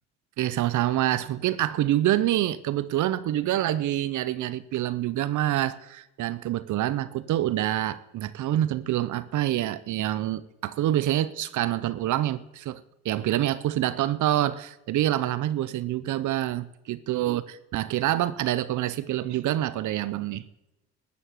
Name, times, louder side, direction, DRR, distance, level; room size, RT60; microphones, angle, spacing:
voice 1, 0.4-20.4, right 13 dB, 75° right, 0.7 m, -26 dB
13.0 x 7.1 x 9.0 m
cardioid pair, 90°, 30 cm